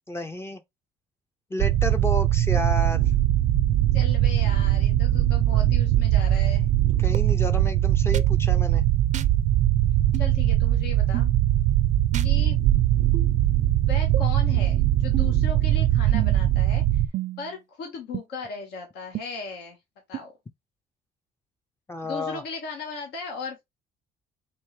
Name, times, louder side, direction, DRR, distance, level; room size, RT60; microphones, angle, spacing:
voice 1, 0.1-0.6 1.5-3.1 5.5-5.6 7.0-8.8 21.9-22.4, left 1 dB, 15° left, 0.5 m, -31 dB
sound 1, 1.6-17.1, right 13 dB, 90° right, 0.6 m, -21 dB
voice 2, 3.9-6.7 10.2-11.3 12.2-12.6 13.9-17.0 17.4-19.8 20.1-20.3 22.0-23.6, left 4 dB, 80° left, 1.3 m, -37 dB
sound 2, 7.1-7.2 8.1-8.2 9.1-9.3 10.1-10.3 11.1-11.3 12.1-12.3 13.1-13.3 14.1-14.2 15.1-15.4 16.1-16.5 17.1-17.5 18.1-18.2 19.1-19.2 20.1-20.2, right 10 dB, 45° right, 0.5 m, -32 dB
4.4 x 3.1 x 3.1 m
cardioid pair, 110°, 17 cm